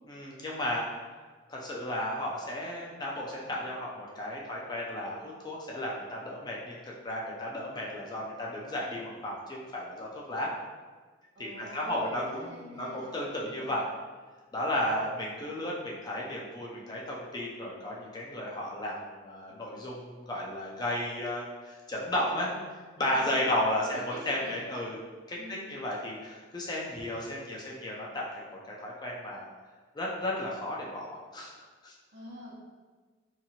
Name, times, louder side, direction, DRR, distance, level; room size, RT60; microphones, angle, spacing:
voice 1, 0.1-0.8 1.5-10.5 11.4-13.9 14.5-22.5 23.0-25.0 25.3-29.5 29.9-31.5 31.8-31.9, left 1 dB, 20° left, -3 dB, 0.4 m, -34 dB
voice 2, 11.3-13.1 13.5-13.7 22.5-22.7 23.1-23.5 23.8-24.6 25.4-25.7 32.1-32.5, equal, 70° right, -7 dB, 1.0 m, -46 dB
2.7 x 2.4 x 2.8 m, 1.4 s
head